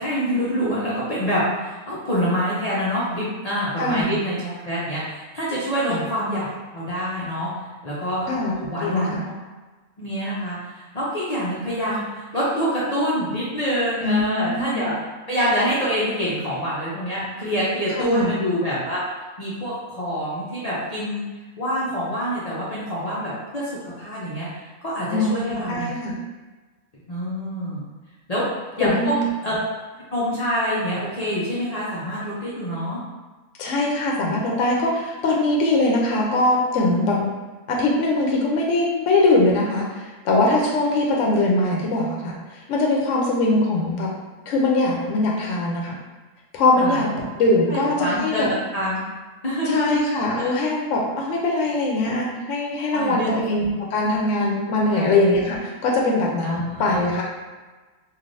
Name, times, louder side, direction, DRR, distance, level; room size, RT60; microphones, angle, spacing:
voice 1, 0.0-7.5 7.8-8.3 8.6-9.3 10.0-14.9 15.3-19.0 19.4-21.2 21.6-25.9 27.1-27.8 28.3-28.4 28.8-29.1 29.4-29.6 30.1-33.0 46.8-47.0 47.7-48.5 48.7-49.0 49.4-50.0 50.4-50.5 52.9-53.3 54.9-55.1 56.4-57.0, equal, 45° left, -8 dB, 0.5 m, -26 dB
voice 2, 8.3-9.2 14.0-14.9 18.0-18.3 25.1-26.1 28.8-29.2 33.6-37.3 37.7-42.3 42.7-44.1 44.5-45.9 46.5-48.5 49.7-57.2, left 2 dB, 70° left, -1 dB, 0.9 m, -22 dB
3.2 x 2.5 x 2.6 m, 1.3 s
omnidirectional pair, 1.4 m